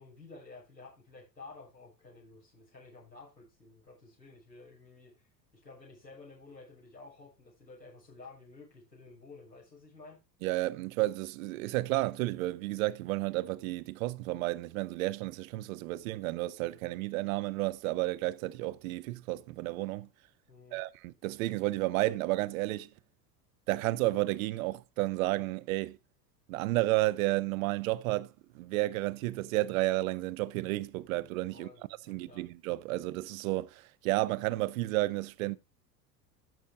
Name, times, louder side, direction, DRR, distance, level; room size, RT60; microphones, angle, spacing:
voice 1, 0.0-10.2 20.5-20.8 31.5-32.5, left 3 dB, 85° left, 6.9 m, -52 dB
voice 2, 10.4-20.1 20.7-22.9 23.7-26.0 26.5-28.3 28.5-31.7 32.1-35.6, right 19 dB, 55° right, 0.8 m, -32 dB
14.0 x 6.5 x 3.7 m
figure-of-eight pair, 75°, 50 cm